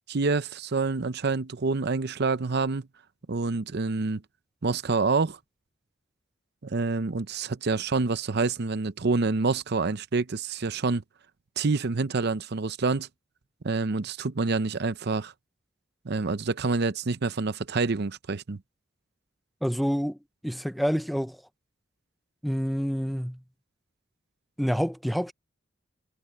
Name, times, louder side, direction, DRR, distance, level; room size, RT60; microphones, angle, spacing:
voice 1, 0.1-2.8 3.3-4.2 4.6-5.4 6.6-11.0 11.6-13.1 13.6-15.3 16.0-18.6, right 4 dB, 60° right, 0.7 m, -27 dB
voice 2, 19.6-20.2 20.4-21.4 22.4-23.4 24.6-25.3, equal, ahead, 0.6 m, -27 dB
head